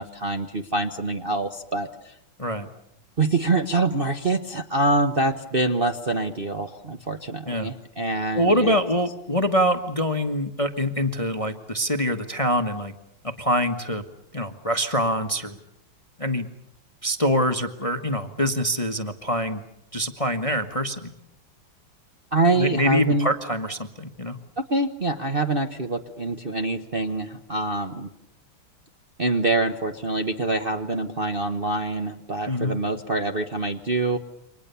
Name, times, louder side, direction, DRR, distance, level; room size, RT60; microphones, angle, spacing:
voice 1, 0.0-2.1 3.2-8.7 22.3-23.3 24.6-28.1 29.2-34.2, right 2 dB, 35° right, 4 dB, 1.0 m, -25 dB
voice 2, 8.3-12.9 13.2-14.0 14.3-15.6 16.2-16.5 17.0-19.6 19.9-21.1 22.5-24.4 32.5-32.8, equal, 20° left, 7 dB, 1.1 m, -24 dB
29.0 x 25.0 x 6.9 m, 0.76 s
omnidirectional pair, 2.3 m